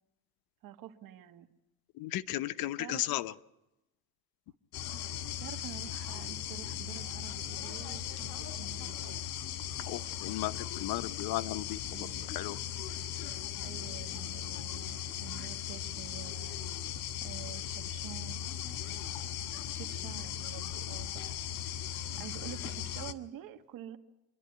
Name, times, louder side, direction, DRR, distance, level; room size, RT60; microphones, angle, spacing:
voice 1, 0.6-1.5 2.4-3.1 5.0-9.3 11.9-12.3 13.6-16.7 17.2-18.4 19.7-21.4 22.2-24.0, right 11 dB, 65° right, 7 dB, 1.9 m, -48 dB
voice 2, 2.0-3.3 9.9-12.1 12.3-12.6, left 15 dB, 70° left, 13 dB, 0.9 m, -35 dB
sound 1, 4.7-23.1, left 9 dB, 85° left, 1.7 m, -38 dB
27.0 x 11.5 x 9.5 m, 0.97 s
cardioid pair, 130°, 37 cm